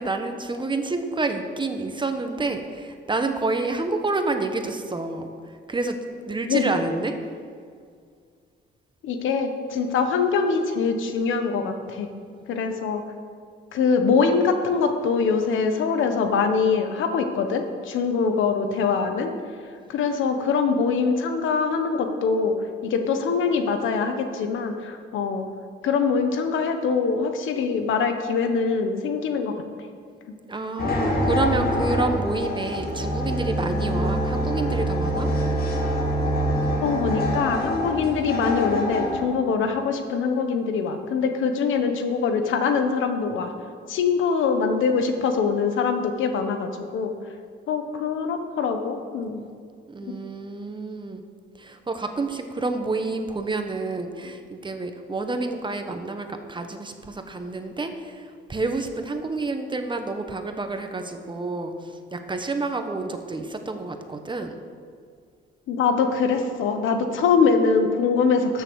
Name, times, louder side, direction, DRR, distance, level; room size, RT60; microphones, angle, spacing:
voice 1, 0.0-6.0 6.3-7.2 30.5-35.3 49.9-51.2 51.6-64.6, right 3 dB, 25° right, 6 dB, 1.2 m, -29 dB
voice 2, 6.5-6.8 9.0-12.1 12.5-13.0 13.7-19.3 19.9-22.5 22.8-25.4 25.8-29.5 30.8-31.0 36.8-43.5 43.9-47.1 47.7-49.4 50.0-50.1 65.7-68.6, left 5 dB, 80° left, 6 dB, 1.2 m, -23 dB
sound 1, 30.8-39.2, left 1 dB, 50° left, 2.6 m, -28 dB
sound 2, 32.7-37.8, right 2 dB, 20° left, 1.3 m, -26 dB
13.0 x 7.0 x 6.4 m, 2.1 s
cardioid pair, 90°, 20 cm